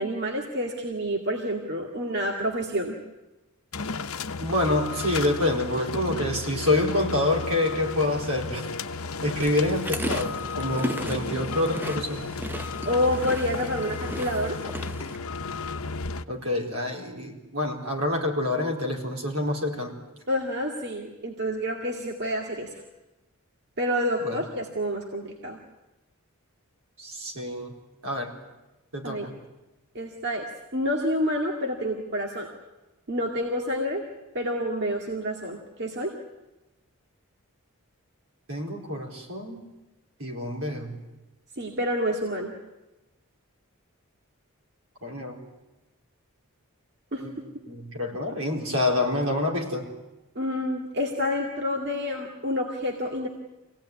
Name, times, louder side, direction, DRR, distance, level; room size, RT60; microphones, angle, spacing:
voice 1, 0.0-3.0 10.8-11.3 12.8-14.6 20.3-22.7 23.8-25.6 29.0-29.3 29.9-32.5 33.1-34.0 34.3-36.1 41.6-42.5 47.1-47.2 50.4-53.3, equal, 50° right, 1 dB, 2.2 m, -28 dB
sound 1, 3.7-16.2, left 4 dB, 70° left, 0.8 m, -33 dB
voice 2, 4.4-8.7 9.2-12.3 16.3-19.9 24.2-24.4 27.0-27.7 28.0-28.3 28.9-29.3 38.5-39.6 40.2-41.0 45.0-45.4 47.2-49.9, left 1 dB, 75° right, 1 dB, 4.3 m, -27 dB
sound 2, 9.4-15.2, equal, 10° right, 0.8 m, -36 dB
25.0 x 17.0 x 9.6 m, 1.0 s
head